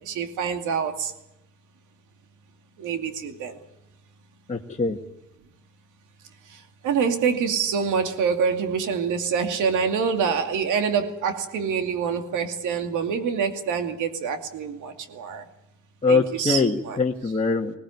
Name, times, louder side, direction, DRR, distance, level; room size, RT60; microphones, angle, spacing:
voice 1, 0.0-1.1 2.8-3.6 6.5-15.4 16.1-17.0, right 6 dB, 85° right, 6 dB, 2.5 m, -26 dB
voice 2, 4.5-5.0 16.0-17.7, left 4 dB, 25° left, -1 dB, 1.7 m, -23 dB
20.5 x 18.5 x 9.8 m, 0.88 s
cardioid pair, 90°, 30 cm